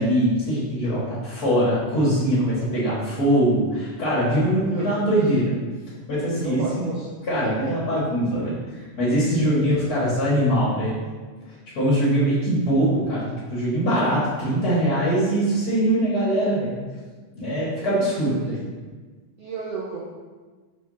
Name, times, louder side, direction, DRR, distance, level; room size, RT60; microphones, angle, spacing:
voice 1, 0.0-5.5 6.1-6.9 7.3-11.0 11.5-16.8 17.4-18.6, right 1 dB, 65° left, -7 dB, 0.9 m, -22 dB
voice 2, 4.6-5.1 6.3-7.1 7.6-7.7 9.4-9.7 18.2-18.5 19.4-20.0, right 4 dB, 85° right, -5 dB, 1.4 m, -33 dB
6.0 x 3.4 x 5.3 m, 1.4 s
omnidirectional pair, 3.9 m